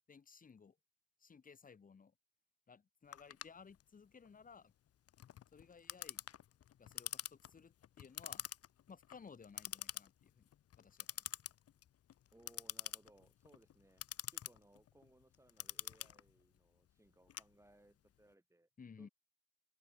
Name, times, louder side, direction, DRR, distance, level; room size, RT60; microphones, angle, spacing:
voice 1, 0.1-0.8 1.2-2.1 2.7-4.7 5.5-6.2 6.8-8.5 8.9-10.5 10.8-11.3 18.8-19.1, left 5 dB, 30° left, 1.0 m, -58 dB
Clock, 3.1-18.1, left 11 dB, 55° left, 0.9 m, -48 dB
voice 2, 12.3-18.7 19.0-19.1, right 1 dB, 10° right, 3.2 m, -67 dB
cardioid pair, 90°, 30 cm